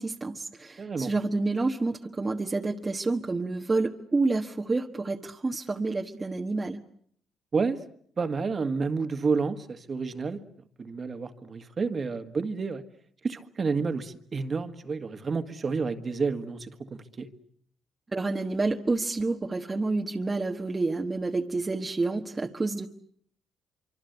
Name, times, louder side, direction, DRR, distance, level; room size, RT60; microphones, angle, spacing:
voice 1, 0.0-6.8 18.1-22.9, right 3 dB, 25° right, 2 dB, 1.4 m, -29 dB
voice 2, 0.8-1.1 7.5-7.8 8.2-10.4 10.8-12.8 13.2-17.3, right 4 dB, 40° right, 8 dB, 1.8 m, -30 dB
25.5 x 25.0 x 8.2 m, 0.64 s
cardioid pair, 90°, 0 cm